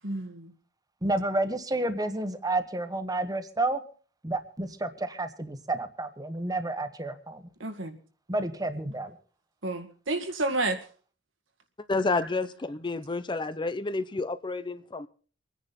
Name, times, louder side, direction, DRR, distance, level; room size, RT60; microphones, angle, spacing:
voice 1, 0.0-0.5 7.6-8.0 9.6-10.8, right 2 dB, 80° right, 2.0 m, -30 dB
voice 2, 1.0-3.8 4.2-7.4 8.3-9.1, right 2 dB, 20° right, 1.4 m, -30 dB
voice 3, 11.9-15.1, left 3 dB, 25° left, 0.6 m, -30 dB
24.5 x 10.0 x 4.3 m
head